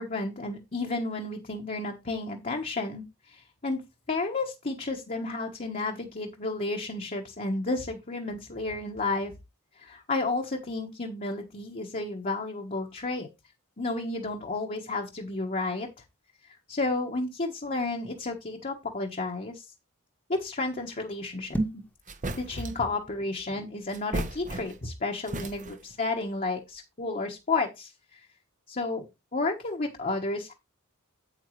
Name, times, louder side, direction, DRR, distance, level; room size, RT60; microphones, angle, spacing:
voice 1, 0.0-3.8 4.1-9.3 9.8-13.3 13.8-15.9 16.5-19.7 20.3-21.8 22.4-28.3 28.7-29.0 29.3-30.5, left 3 dB, 35° left, 1 dB, 1.3 m, -32 dB
sound 1, 21.4-22.0, right 2 dB, 10° left, 1.3 m, -30 dB
sound 2, 21.6-21.7 22.1-22.9 23.9-25.0 25.3-26.0, right 1 dB, 35° right, 1.0 m, -35 dB
9.1 x 8.6 x 3.2 m, 0.23 s
head